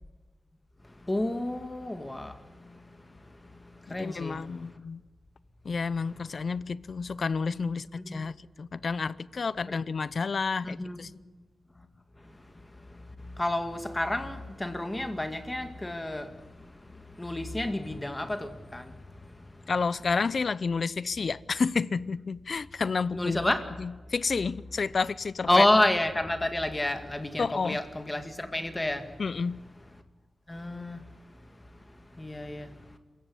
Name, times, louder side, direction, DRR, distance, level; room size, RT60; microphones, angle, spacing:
voice 1, 1.0-4.7 6.4-6.5 8.0-8.3 9.7-9.8 10.6-11.1 12.2-12.3 12.8-19.6 23.1-23.6 25.5-29.1 30.5-31.1 32.1-32.8, left 1 dB, 20° left, 2.1 m, -30 dB
voice 2, 3.9-5.0 5.6-11.1 19.7-23.4 23.8-25.6 27.4-27.8 29.2-29.7, left 4 dB, 55° left, 0.7 m, -30 dB
27.5 x 16.0 x 9.8 m
wide cardioid pair, 95°, 0 cm